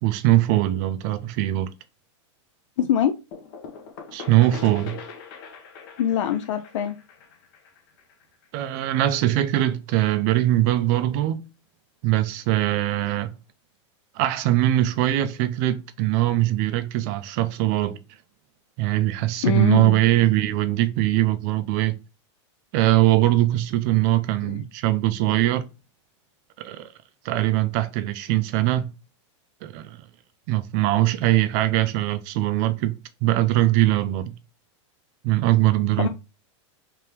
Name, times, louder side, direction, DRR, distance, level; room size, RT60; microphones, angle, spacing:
voice 1, 0.0-1.7 4.1-5.0 8.5-11.4 12.0-13.3 14.2-18.0 18.8-21.9 22.7-25.7 26.6-26.9 27.2-28.9 29.6-30.0 30.5-32.9 33.2-34.3 35.2-36.1, right 15 dB, 35° right, 0.4 m, -21 dB
voice 2, 2.8-3.2 6.0-7.0 19.4-20.0 24.4-24.6 36.0-36.1, left 9 dB, 75° left, 0.4 m, -23 dB
sound 1, 3.3-8.9, left 6 dB, 45° left, 0.8 m, -42 dB
3.4 x 3.3 x 2.9 m
supercardioid pair, 160°, 16 cm